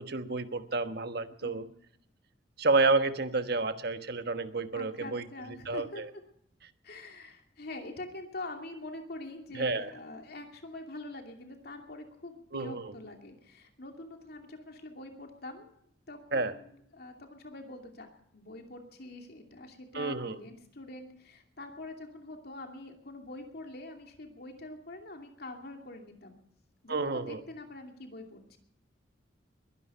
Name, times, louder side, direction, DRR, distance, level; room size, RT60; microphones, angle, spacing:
voice 1, 0.0-1.7 2.6-5.2 5.7-6.1 9.5-9.9 12.5-12.8 16.3-16.5 19.9-20.4 26.9-27.4, right 3 dB, 55° right, 9 dB, 1.3 m, -30 dB
voice 2, 1.4-1.7 4.7-6.0 6.8-15.7 16.1-26.4 26.8-28.6, left 2 dB, 55° left, 4 dB, 2.6 m, -45 dB
22.0 x 11.5 x 5.6 m, 0.71 s
head